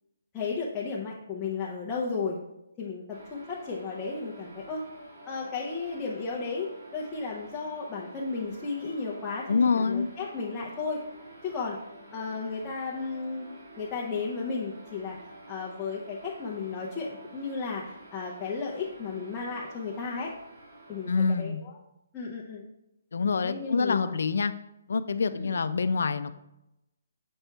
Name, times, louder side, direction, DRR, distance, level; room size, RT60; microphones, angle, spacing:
voice 1, 0.3-2.4 2.8-4.8 5.3-11.0 11.4-11.8 12.1-13.5 13.8-15.2 15.5-20.3 20.9-21.8 22.1-22.6 23.4-24.1 25.3-25.6, left 4 dB, 10° left, -5 dB, 0.6 m, -34 dB
sound 1, 3.1-21.5, right 1 dB, 45° right, 2.3 m, -49 dB
voice 2, 9.5-10.1 21.1-21.6 23.1-24.5 24.9-26.4, left 5 dB, 70° left, 12 dB, 0.4 m, -26 dB
7.0 x 4.3 x 3.4 m, 0.88 s
hypercardioid pair, 170°, 0 cm